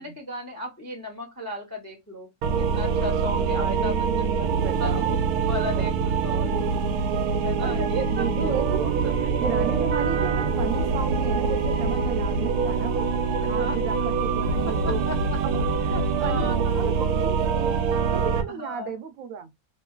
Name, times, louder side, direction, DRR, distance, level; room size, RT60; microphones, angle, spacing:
voice 1, 0.0-2.3 2.6-4.0 4.4-4.5 4.8-6.6 7.4-9.3 11.9-12.0 13.4-13.8 15.1-15.2 15.9-16.9 18.5-18.9, left 1 dB, 20° left, 0.5 m, -35 dB
sound 1, 2.4-18.4, right 5 dB, 90° right, 1.1 m, -24 dB
voice 2, 3.6-5.2 5.7-5.9 7.6-8.9 9.4-13.1 13.5-15.0 15.4-15.6 16.2-17.8 18.1-19.5, right 6 dB, 70° right, 1.0 m, -33 dB
3.0 x 2.7 x 2.3 m
omnidirectional pair, 1.6 m